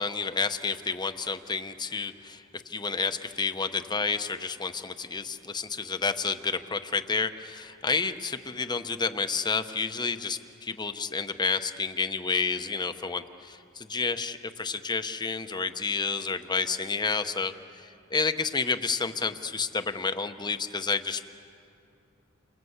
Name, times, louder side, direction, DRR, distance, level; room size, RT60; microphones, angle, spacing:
voice 1, 0.0-21.2, left 4 dB, 20° left, 9 dB, 0.9 m, -30 dB
29.0 x 25.5 x 8.0 m, 2.6 s
head